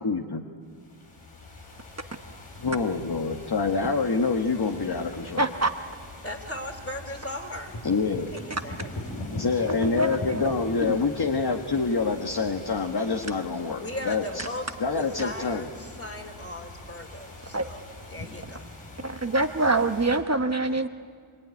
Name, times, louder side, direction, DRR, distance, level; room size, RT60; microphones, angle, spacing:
voice 1, 0.0-0.4 2.6-5.5 7.8-8.3 9.3-14.4 14.8-15.7, left 4 dB, 50° left, 3 dB, 1.5 m, -26 dB
sound 1, 0.7-20.2, left 1 dB, 80° left, 5.0 m, -42 dB
voice 2, 5.4-5.7 9.8-10.5 10.8-11.0 17.5-17.7 19.0-20.9, right 2 dB, 30° right, 7 dB, 1.1 m, -25 dB
voice 3, 6.2-7.8 8.3-8.9 13.8-17.8 18.1-18.7, left 1 dB, 30° left, 5 dB, 3.2 m, -38 dB
24.5 x 24.5 x 9.7 m, 2.1 s
wide cardioid pair, 75°, 49 cm